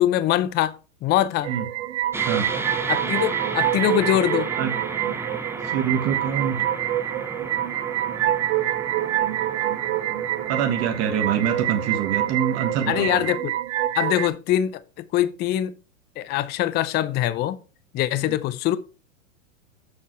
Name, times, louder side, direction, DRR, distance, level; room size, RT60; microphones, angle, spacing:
voice 1, 0.0-1.5 2.9-4.5 12.9-13.5 13.9-15.7 16.2-17.6 17.9-18.8, left 12 dB, 25° left, 0.5 m, -23 dB
sound 1, 1.4-14.3, right 13 dB, 65° right, 0.7 m, -26 dB
sound 2, 2.1-13.4, right 2 dB, 5° right, 0.9 m, -35 dB
voice 2, 5.6-6.6 10.5-13.3 18.2-18.4, right 8 dB, 40° right, 1.4 m, -25 dB
7.3 x 6.5 x 4.4 m
hypercardioid pair, 110°, 40 cm